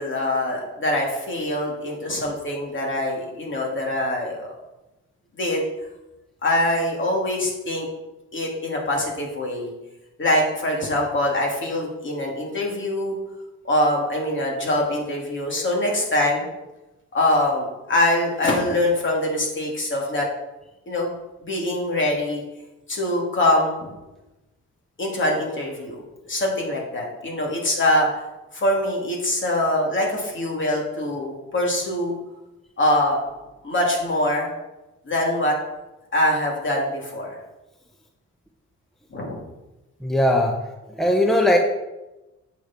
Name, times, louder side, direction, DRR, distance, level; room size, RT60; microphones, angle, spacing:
voice 1, 0.0-4.5 5.3-5.6 6.4-7.9 8.3-9.7 10.2-13.2 13.6-16.5 17.1-20.3 20.9-21.1 21.4-22.4 22.9-23.9 25.0-28.2 28.5-32.2 32.8-33.2 33.6-34.5 35.0-35.6 36.1-37.4 39.1-39.4, left 1 dB, 40° left, -1 dB, 3.0 m, -23 dB
voice 2, 40.0-40.6 41.0-41.6, left 1 dB, ahead, 1 dB, 1.0 m, -18 dB
8.7 x 6.9 x 4.5 m, 1.0 s
cardioid pair, 90°, 30 cm